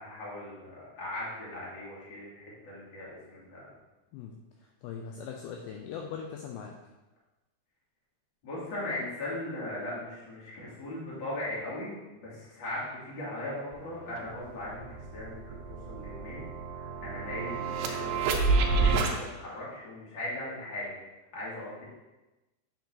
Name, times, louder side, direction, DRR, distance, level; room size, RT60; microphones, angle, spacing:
voice 1, 0.0-3.7 8.4-16.5 16.7-20.9 21.3-21.8, left 1 dB, 35° left, -8 dB, 2.5 m, -39 dB
voice 2, 4.6-6.7, left 7 dB, 80° left, 1 dB, 2.3 m, -40 dB
sound 1, 13.7-13.8 14.2-19.1, right 3 dB, 80° right, 2.8 m, -29 dB
7.7 x 6.9 x 2.8 m, 1.1 s
omnidirectional pair, 4.9 m